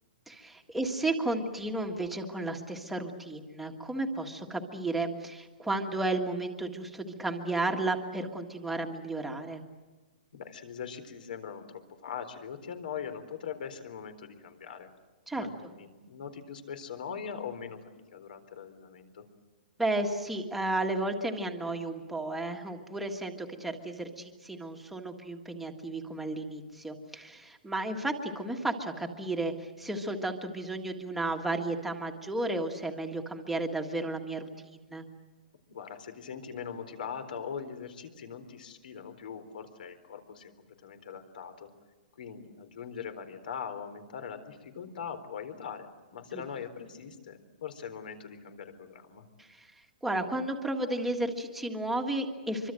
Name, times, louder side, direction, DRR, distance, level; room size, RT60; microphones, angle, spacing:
voice 1, 0.3-9.6 15.3-15.7 19.8-34.5 34.9-35.0 46.3-46.4 49.4-49.7 50.0-52.7, right 2 dB, ahead, 2 dB, 1.7 m, -33 dB
voice 2, 10.3-14.9 15.3-19.2 35.7-41.7 42.2-49.3, left 7 dB, 65° left, 9 dB, 4.0 m, -41 dB
26.0 x 24.5 x 7.8 m, 1.3 s
hypercardioid pair, 170°, 5 cm